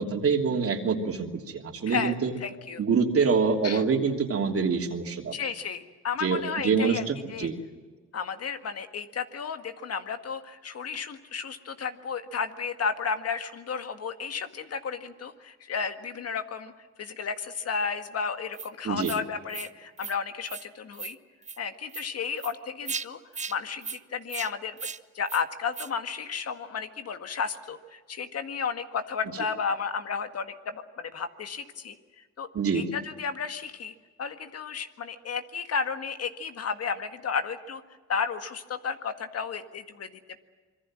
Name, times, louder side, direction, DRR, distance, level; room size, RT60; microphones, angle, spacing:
voice 1, 0.0-2.3 2.8-5.3 6.2-7.6 18.8-19.1 32.5-32.8, right 5 dB, 50° right, 3 dB, 3.1 m, -26 dB
voice 2, 2.4-2.8 3.6-3.8 5.3-7.0 7.3-7.5 8.1-16.7 17.0-21.2 21.6-23.2 23.5-24.8 25.1-32.0 32.4-32.5 32.7-37.8 38.1-40.1, left 6 dB, 55° left, 8 dB, 1.8 m, -33 dB
sound 1, 18.5-18.7 19.0-19.2 19.5-19.7 20.0-20.1 20.5-20.7 20.9-21.1 21.4-21.6 21.9-22.1 22.4-22.5 22.9-23.1 23.3-23.5 23.8-24.0 24.3-24.5 24.8-25.0 25.3-25.4 25.7-25.9, right 5 dB, 25° right, 0.7 m, -36 dB
26.0 x 22.0 x 7.6 m, 1.4 s
cardioid pair, 90°, 30 cm